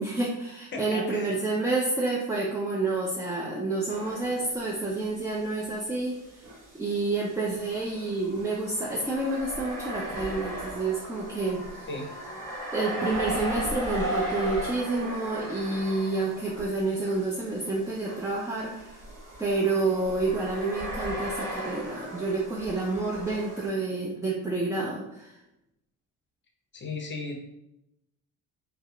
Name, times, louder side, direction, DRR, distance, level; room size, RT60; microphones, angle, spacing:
voice 1, 0.0-6.2 6.7-11.7 12.7-19.0 19.4-25.3, right 3 dB, 10° right, -4 dB, 0.3 m, -29 dB
voice 2, 0.7-1.3 11.9-12.1 26.7-27.4, left 3 dB, 30° left, 2 dB, 0.6 m, -35 dB
sound 1, 3.9-5.0 5.3-5.4 6.4-23.7, right 1 dB, 50° right, 1.0 m, -37 dB
2.7 x 2.0 x 2.4 m, 0.85 s
hypercardioid pair, 60°, 41 cm